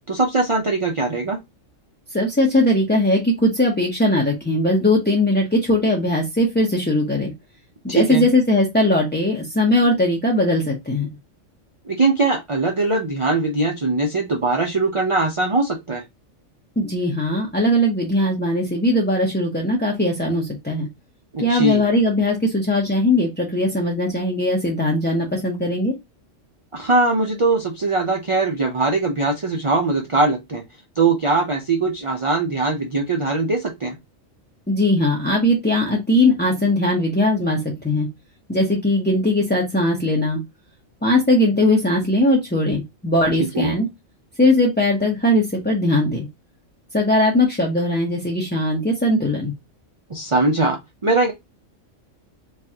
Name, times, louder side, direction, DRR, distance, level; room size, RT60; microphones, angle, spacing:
voice 1, 0.1-1.4 7.9-8.3 11.9-16.0 21.3-21.8 26.7-30.6 31.0-34.0 43.5-43.7 50.1-51.3, right 3 dB, 40° right, 2 dB, 0.4 m, -21 dB
voice 2, 2.1-7.3 7.8-11.1 16.8-20.9 21.4-25.9 34.7-38.1 38.5-40.4 41.0-43.9 44.4-46.3 46.9-49.5, left 1 dB, 10° left, -3 dB, 0.5 m, -19 dB
4.7 x 2.5 x 2.8 m, 0.20 s
omnidirectional pair, 1.4 m